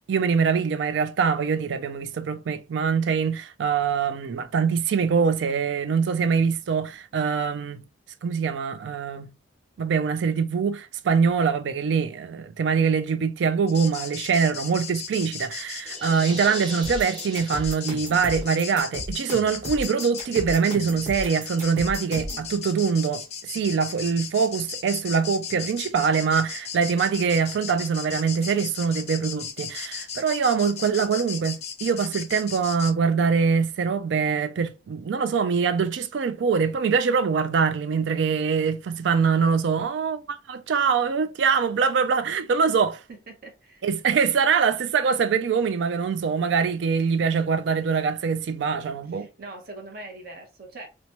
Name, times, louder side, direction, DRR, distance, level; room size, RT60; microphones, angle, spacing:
voice 1, 0.1-7.8 8.2-9.3 9.8-43.0 43.8-49.3, right 6 dB, 80° right, 0.4 m, -24 dB
sound 1, 13.7-32.9, left 7 dB, 40° left, 0.4 m, -36 dB
sound 2, 15.8-18.4, right 1 dB, 25° right, 0.9 m, -39 dB
sound 3, 16.8-22.5, equal, 40° right, 1.2 m, -35 dB
voice 2, 43.3-43.9 49.1-50.9, right 2 dB, 55° right, 0.8 m, -42 dB
2.8 x 2.2 x 2.8 m
head